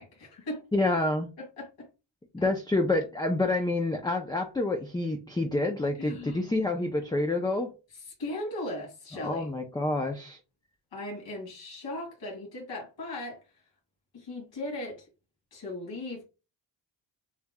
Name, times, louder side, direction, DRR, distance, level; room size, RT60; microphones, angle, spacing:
voice 1, 0.0-0.6 1.4-1.9 2.4-2.5 6.0-6.5 7.9-9.5 10.9-13.4 14.1-15.1 15.5-16.2, left 1 dB, 75° left, 2.4 m, -38 dB
voice 2, 0.7-1.3 2.3-7.7 9.2-10.4, left 2 dB, 10° left, 0.5 m, -28 dB
7.2 x 3.0 x 2.2 m
cardioid pair, 120°, 45 cm